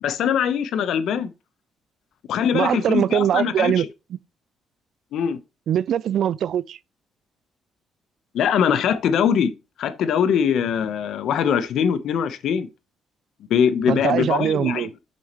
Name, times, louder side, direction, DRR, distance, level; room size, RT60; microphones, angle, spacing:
voice 1, 0.0-1.3 2.3-3.9 5.1-5.4 8.3-9.5 9.8-12.7 13.5-14.9, left 8 dB, 75° left, 0.9 m, -22 dB
voice 2, 2.5-3.9 5.7-6.8 13.9-14.9, right 9 dB, 70° right, 0.4 m, -22 dB
7.0 x 6.4 x 3.1 m
cardioid pair, 90°, 0 cm